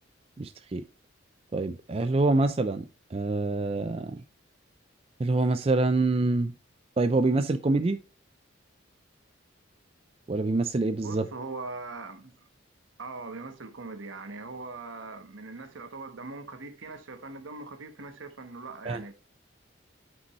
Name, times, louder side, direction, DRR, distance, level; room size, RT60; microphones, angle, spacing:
voice 1, 0.4-0.8 1.5-2.8 3.1-4.2 5.2-6.5 7.0-8.0 10.3-11.3 18.9-19.0, right 2 dB, 30° right, 0.4 m, -26 dB
voice 2, 11.0-12.3 13.0-19.1, right 3 dB, 80° right, 1.1 m, -41 dB
8.4 x 5.3 x 3.0 m
head